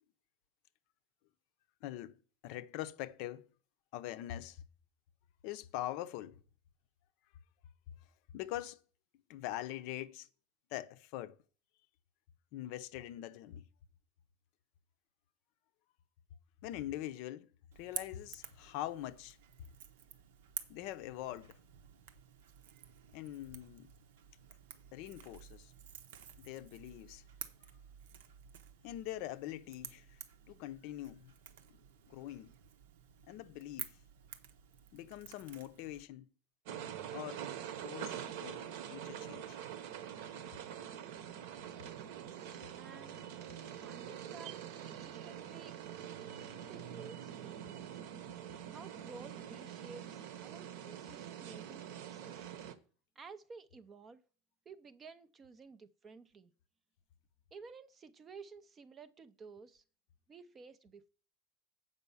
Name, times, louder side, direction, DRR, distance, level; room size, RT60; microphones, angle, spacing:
voice 1, 1.8-2.2 2.4-3.5 3.9-4.6 5.4-6.4 8.3-8.8 9.3-10.3 10.7-11.4 12.5-13.6 16.6-17.5 17.8-19.4 20.7-21.6 23.1-23.9 24.9-25.7 26.4-27.2 28.8-30.2 30.5-31.3 32.1-32.5 33.3-34.0 34.9-36.3 37.1-37.4 37.8-39.6, left 14 dB, 45° left, 0.5 m, -43 dB
Crackle / Crack, 17.7-36.0, right 9 dB, 85° right, 0.9 m, -51 dB
sound 1, 36.7-52.7, right 9 dB, 55° right, 0.9 m, -45 dB
voice 2, 42.8-43.2 43.7-45.8 46.5-48.0 48.7-52.5 53.2-54.2 54.7-56.5 57.5-59.8 60.3-61.1, right 4 dB, 15° right, 0.4 m, -54 dB
8.0 x 5.5 x 6.9 m
supercardioid pair, 180°, 0 cm